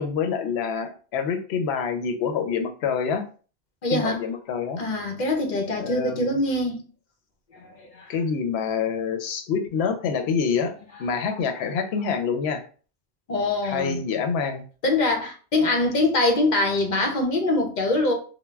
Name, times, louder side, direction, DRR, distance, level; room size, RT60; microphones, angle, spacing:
voice 1, 0.0-3.3 3.9-4.8 5.8-6.4 8.1-10.7 11.0-12.6 13.6-14.7, left 6 dB, 80° left, 0.8 m, -26 dB
voice 2, 3.8-4.2 4.8-6.8 7.6-8.1 13.3-14.0 14.8-18.1, left 2 dB, 50° left, 0.7 m, -23 dB
2.3 x 2.1 x 3.1 m
omnidirectional pair, 1.1 m